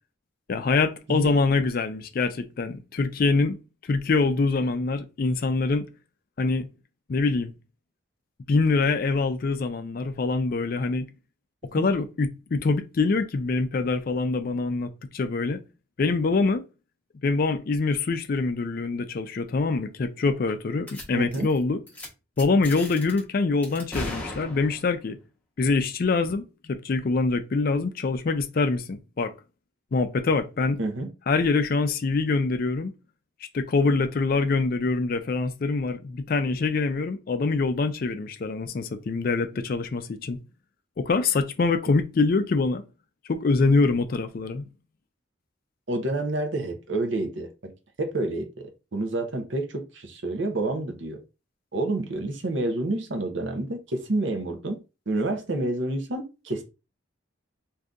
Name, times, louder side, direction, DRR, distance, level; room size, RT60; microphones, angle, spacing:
voice 1, 0.5-3.6 3.8-5.9 6.4-6.7 7.1-7.5 8.5-11.1 11.7-15.6 16.0-16.6 17.2-21.8 22.4-25.2 25.6-29.3 29.9-30.8 31.3-32.9 33.4-40.4 41.0-42.8 43.3-44.7, left 3 dB, 45° left, 0.4 m, -24 dB
sound 1, 20.9-21.0 21.3-21.6 21.9-22.1 22.4-23.2 23.6-25.0, left 1 dB, 10° left, 0.9 m, -36 dB
voice 2, 21.1-21.5 30.8-31.1 45.9-47.7 48.0-51.2 51.7-56.6, right 2 dB, 65° right, 0.7 m, -29 dB
2.7 x 2.5 x 3.5 m
head